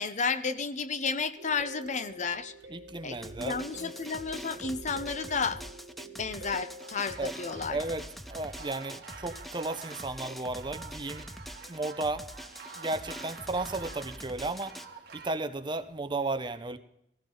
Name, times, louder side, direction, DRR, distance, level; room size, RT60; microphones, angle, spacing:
voice 1, 0.0-2.5 3.0-5.6 6.1-7.8, left 5 dB, 45° left, 12 dB, 0.7 m, -32 dB
sound 1, 1.4-8.3 12.5-12.6 13.0-13.1, right 1 dB, 80° right, 1.0 m, -48 dB
voice 2, 2.7-3.6 7.2-7.3 7.7-11.3 11.7-12.2 12.8-14.7 15.1-16.8, right 2 dB, 25° right, 9 dB, 0.8 m, -34 dB
Drum, 3.2-14.9, equal, ahead, 0.6 m, -45 dB
sound 2, 6.8-15.3, right 5 dB, 60° right, 1.9 m, -48 dB
16.0 x 15.5 x 3.9 m, 0.78 s
head